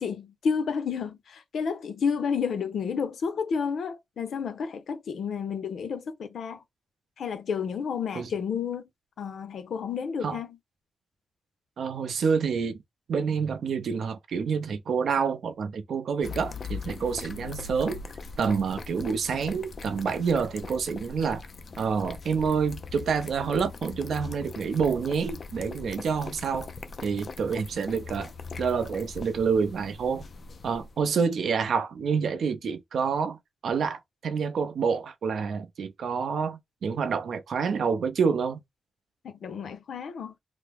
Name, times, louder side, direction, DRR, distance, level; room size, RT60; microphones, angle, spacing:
voice 1, 0.0-6.6 7.2-8.8 9.2-10.6 39.2-40.3, left 6 dB, 90° left, 0.6 m, -31 dB
voice 2, 11.8-12.8 13.1-18.0 18.4-21.4 21.8-26.7 27.0-28.3 28.6-30.3 30.6-33.4 33.6-38.6, right 6 dB, 90° right, 0.5 m, -28 dB
sound 1, 16.2-31.0, left 4 dB, 45° left, 0.3 m, -41 dB
3.3 x 2.0 x 3.3 m
wide cardioid pair, 170°, 0 cm